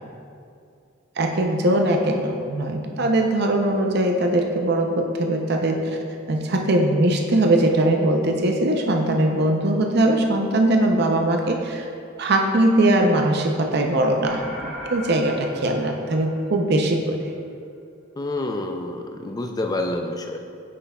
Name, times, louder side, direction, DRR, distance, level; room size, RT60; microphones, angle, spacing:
voice 1, 1.2-5.9 6.3-11.9 12.2-17.2, right 1 dB, 50° right, 3 dB, 0.6 m, -21 dB
sound 1, 14.2-16.9, equal, ahead, 1.1 m, -37 dB
voice 2, 18.2-20.4, left 2 dB, 20° left, 4 dB, 0.4 m, -28 dB
9.5 x 5.9 x 2.3 m, 2.4 s
head